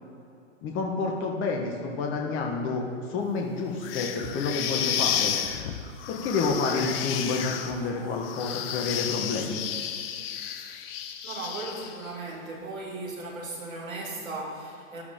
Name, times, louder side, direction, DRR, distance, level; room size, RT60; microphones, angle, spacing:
voice 1, 0.6-5.4 6.1-9.6, left 4 dB, 30° left, 0 dB, 1.5 m, -29 dB
sound 1, 3.8-12.1, left 9 dB, 45° left, 1.0 m, -32 dB
voice 2, 11.2-15.0, right 2 dB, 85° right, -1 dB, 2.9 m, -37 dB
13.5 x 10.5 x 3.7 m, 2.5 s
hypercardioid pair, 110°, 40 cm